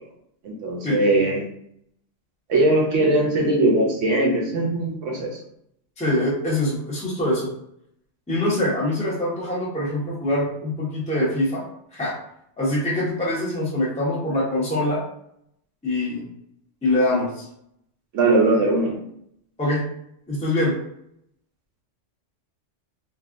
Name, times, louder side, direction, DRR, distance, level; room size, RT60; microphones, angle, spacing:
voice 1, 0.4-1.4 2.5-5.4 18.1-18.9, right 2 dB, 80° right, -1 dB, 1.0 m, -20 dB
voice 2, 6.0-7.5 8.3-11.6 11.9-12.2 12.6-15.0 15.8-16.3 16.8-17.5 19.6-19.8 20.3-20.7, left 1 dB, 5° left, -6 dB, 0.8 m, -24 dB
3.5 x 2.3 x 2.5 m, 0.72 s
omnidirectional pair, 1.2 m